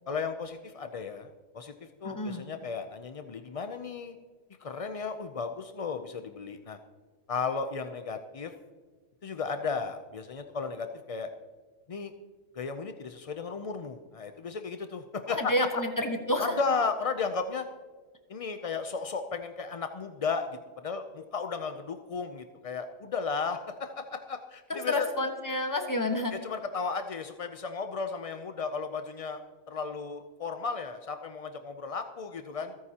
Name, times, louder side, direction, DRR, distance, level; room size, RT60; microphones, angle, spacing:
voice 1, 0.1-1.7 2.0-4.2 4.6-6.8 7.3-8.5 9.2-11.3 11.9-12.1 12.5-15.5 16.4-17.7 18.3-25.1 26.3-32.8, left 5 dB, 65° left, 7 dB, 0.3 m, -34 dB
voice 2, 2.0-2.4 15.3-16.5 24.7-26.3, left 1 dB, 15° left, 5 dB, 1.1 m, -29 dB
27.0 x 9.5 x 2.9 m, 1.5 s
omnidirectional pair, 1.4 m